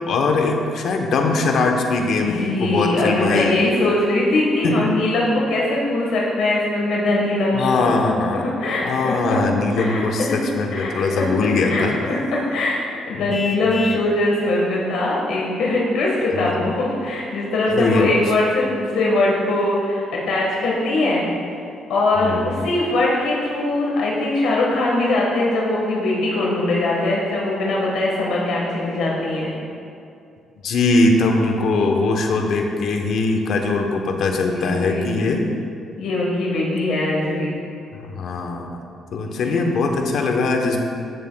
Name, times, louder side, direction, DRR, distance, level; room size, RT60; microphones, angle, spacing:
voice 1, 0.1-3.6 4.6-4.9 7.5-8.5 8.8-12.0 13.2-13.3 13.7-13.8 16.3-16.6 17.7-18.1 22.2-22.6 30.6-35.4 37.9-38.7 39.1-40.8, left 3 dB, 60° left, 3 dB, 0.9 m, -21 dB
voice 2, 2.3-8.1 8.4-9.4 9.8-10.4 10.7-11.3 11.6-12.8 13.1-21.2 21.9-29.5 34.5-35.1 36.0-37.6 39.4-39.7, left 2 dB, 80° left, -3 dB, 1.4 m, -21 dB
Vehicle horn car horn honking, 13.3-14.1, left 4 dB, 35° left, 0.5 m, -30 dB
13.5 x 7.3 x 2.3 m, 2.5 s
cardioid pair, 140°, 0 cm